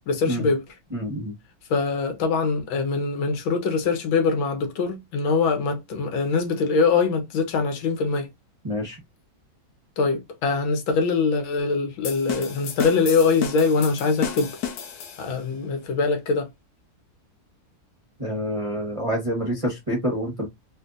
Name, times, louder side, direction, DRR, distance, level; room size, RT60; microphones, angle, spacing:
voice 1, 0.1-0.6 1.7-8.3 10.0-14.5 15.2-16.5, left 4 dB, 85° left, 1.7 m, -23 dB
voice 2, 0.9-1.3 8.6-9.0 18.2-20.5, equal, 30° right, 0.6 m, -27 dB
sound 1, 12.0-15.5, left 8 dB, 65° left, 1.1 m, -32 dB
4.2 x 2.6 x 2.4 m
omnidirectional pair, 2.1 m